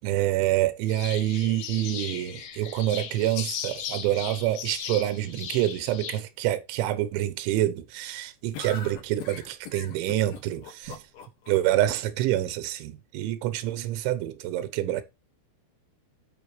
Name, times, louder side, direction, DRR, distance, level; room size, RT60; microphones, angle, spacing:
voice 1, 0.0-11.0 11.5-15.0, right 13 dB, 90° right, 3.2 m, -27 dB
sound 1, 0.9-6.2, left 8 dB, 75° left, 1.7 m, -37 dB
sound 2, 8.5-11.5, left 7 dB, 60° left, 2.9 m, -41 dB
15.0 x 5.4 x 3.1 m
omnidirectional pair, 5.3 m